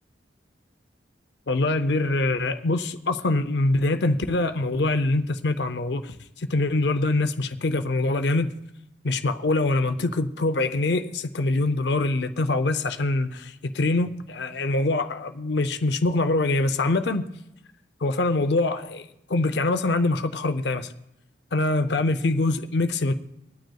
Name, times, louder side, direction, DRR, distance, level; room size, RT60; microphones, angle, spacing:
voice 1, 1.5-8.5 9.0-17.3 18.0-20.9 21.5-23.1, left 2 dB, 75° left, 9 dB, 0.6 m, -24 dB
25.5 x 9.2 x 2.3 m, 0.84 s
head